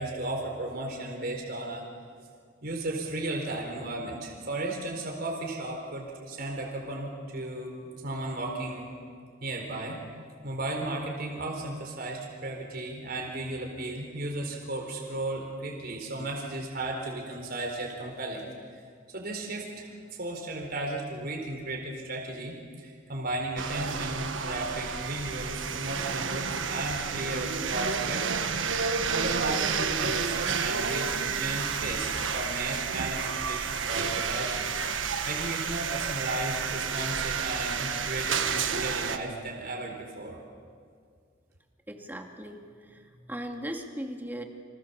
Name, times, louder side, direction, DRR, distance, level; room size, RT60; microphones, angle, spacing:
voice 1, 0.0-1.8 2.6-7.7 8.0-8.9 9.4-10.0 10.4-18.4 19.1-19.9 20.2-28.5 28.7-28.8 29.1-34.7 35.3-40.4, right 2 dB, 50° right, 0 dB, 4.4 m, -35 dB
sound 1, 23.6-39.2, right 6 dB, 80° right, 1.4 m, -30 dB
voice 2, 41.9-44.4, equal, 10° right, 2 dB, 2.4 m, -38 dB
29.0 x 26.5 x 7.1 m, 2.1 s
head